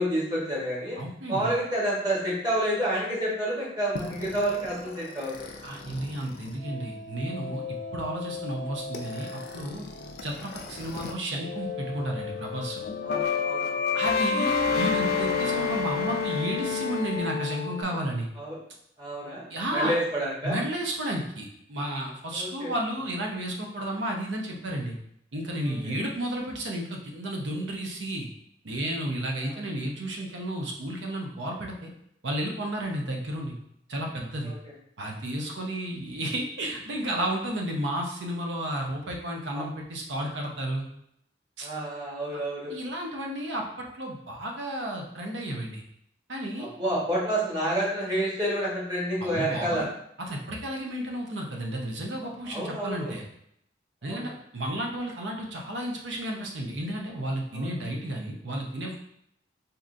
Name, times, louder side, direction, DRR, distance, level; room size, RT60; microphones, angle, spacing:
voice 1, 0.0-1.0 1.3-5.5 13.0-14.0 18.4-18.6 19.0-19.4 19.7-20.6 22.3-22.7 25.6-25.9 29.4-29.5 34.4-34.5 39.5-39.6 41.6-42.7 46.6-49.9 52.5-53.1 54.0-54.3 57.5-57.7, right 1 dB, 25° right, -6 dB, 1.1 m, -29 dB
voice 2, 1.0-1.5 5.6-7.6 7.9-9.8 10.2-12.9 13.9-18.3 19.5-19.9 20.4-25.0 25.3-28.3 28.6-31.9 32.2-33.6 33.9-34.5 35.0-40.9 41.6-41.7 42.3-42.4 42.7-45.8 46.3-46.7 49.2-49.9 50.3-53.2 54.0-58.9, right 1 dB, 85° right, 0 dB, 0.7 m, -32 dB
sound 1, 3.9-11.1 11.4-17.8, left 5 dB, 60° left, 0.4 m, -31 dB
3.7 x 2.8 x 2.5 m, 0.73 s
head